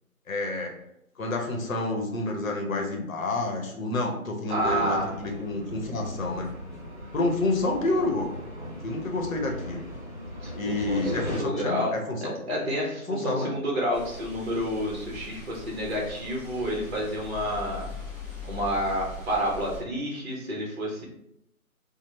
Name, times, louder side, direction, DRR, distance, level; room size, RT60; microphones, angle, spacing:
voice 1, 0.3-0.7 1.2-6.5 7.1-8.3 8.8-9.9 10.6-12.4 13.1-13.5, left 2 dB, 65° left, 2 dB, 0.8 m, -29 dB
sound 1, 4.5-11.4, equal, 15° right, 1.1 m, -38 dB
voice 2, 4.5-5.1 10.4-11.9 12.2-17.9 18.5-21.1, equal, 45° right, -2 dB, 0.7 m, -29 dB
sound 2, 13.9-19.8, left 2 dB, 20° left, 1.0 m, -41 dB
3.1 x 2.0 x 2.9 m, 0.79 s
figure-of-eight pair, 170°, 43 cm